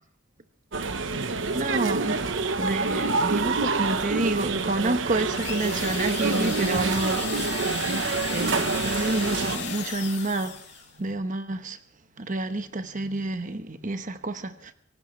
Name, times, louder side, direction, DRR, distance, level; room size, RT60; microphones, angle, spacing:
sound 1, 0.7-9.6, right 4 dB, 75° right, 1.0 m, -27 dB
voice 1, 0.9-1.3 1.5-2.3 2.6-10.6 11.0-11.8 12.2-14.7, right 2 dB, 40° right, 1.0 m, -29 dB
sound 2, 5.3-10.9, left 6 dB, 60° left, 2.5 m, -35 dB
24.0 x 17.0 x 3.2 m
head